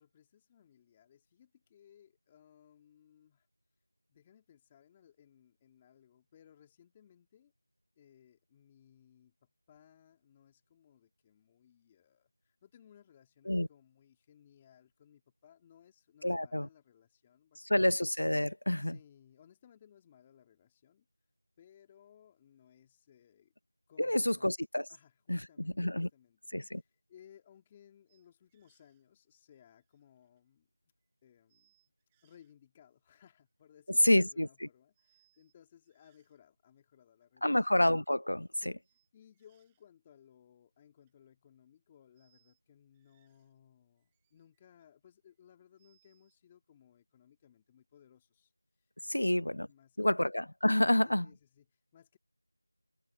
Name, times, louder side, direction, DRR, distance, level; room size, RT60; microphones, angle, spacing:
voice 1, 0.0-3.5 4.1-7.5 8.0-17.8 18.8-21.1 21.6-23.5 23.9-24.5 24.9-30.7 31.2-31.7 32.2-37.8 38.5-50.2 51.0-52.2, left 9 dB, 10° left, 2.1 m, -62 dB
voice 2, 16.2-16.7 17.7-19.0 24.0-24.9 25.3-26.1 26.5-26.8 34.0-34.5 37.4-38.5 49.1-49.7 50.0-51.3, left 1 dB, 75° left, 0.6 m, -28 dB
sound 1, 28.1-29.1 29.5-30.5 31.0-31.1 31.5-32.5 33.3-33.6 34.9-35.5 35.8-36.4 37.2-37.3 38.8-39.9 40.8-41.1 42.1-42.6 42.9-43.6 44.0-44.9 45.3-46.4, right 14 dB, 5° right, 6.8 m, -77 dB
figure-of-eight pair, 175°, 0 cm